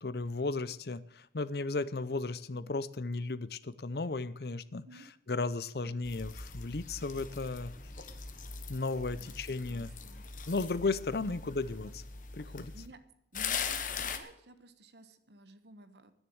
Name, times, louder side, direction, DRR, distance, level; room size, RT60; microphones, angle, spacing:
voice 1, 0.0-4.9 5.3-7.7 8.7-9.9 10.5-12.0 12.3-12.7, left 3 dB, 65° left, 16 dB, 0.7 m, -35 dB
sound 1, 6.0-12.9 13.3-14.2, left 6 dB, 45° left, 1.1 m, -41 dB
voice 2, 9.2-10.3 11.3-11.5 11.8-11.9 12.5-13.0 13.3-16.1, right 1 dB, 75° right, 11 dB, 1.2 m, -55 dB
10.5 x 10.0 x 7.8 m, 0.77 s
head